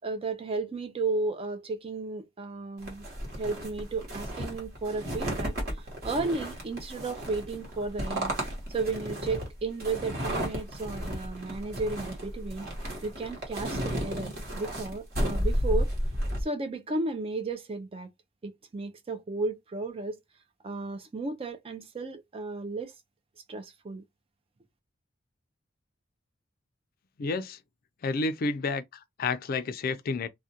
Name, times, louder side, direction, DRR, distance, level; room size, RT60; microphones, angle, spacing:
voice 1, 0.0-3.1 3.3-8.4 8.7-12.7 13.0-15.9 16.4-18.1 18.4-20.2 20.6-22.9 23.5-24.0, right 3 dB, 30° right, 0.4 m, -34 dB
sound 1, 2.8-16.4, equal, 55° right, 1.1 m, -33 dB
voice 2, 27.2-27.6 28.0-28.8 29.2-30.3, left 3 dB, 50° left, 0.4 m, -30 dB
2.4 x 2.1 x 2.7 m
head